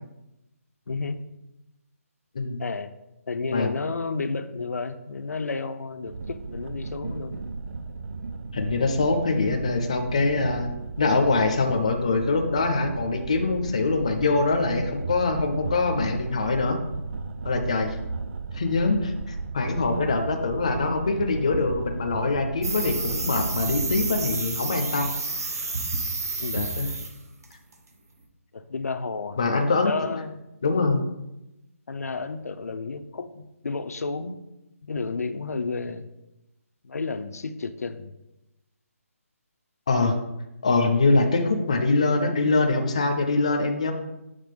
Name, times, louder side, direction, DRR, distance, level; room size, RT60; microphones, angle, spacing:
voice 1, 0.9-1.2 2.6-2.9 3.3-7.4 26.4-26.7 28.5-29.4 29.7-30.4 31.9-34.4 34.8-36.1 36.8-38.1, left 4 dB, 85° left, 9 dB, 0.5 m, -31 dB
sound 1, 6.1-24.2, right 3 dB, 50° right, 0.4 m, -35 dB
voice 2, 8.5-10.7 11.0-16.8 17.4-18.0 18.5-25.1 26.5-26.9 29.4-29.9 30.6-31.0 39.9-40.1 40.6-43.9, left 3 dB, 25° left, 5 dB, 0.4 m, -24 dB
sound 2, 22.6-27.2 27.4-27.7, right 3 dB, 90° right, 1.3 m, -30 dB
6.6 x 3.5 x 5.2 m, 0.94 s
hypercardioid pair, 180°, 8 cm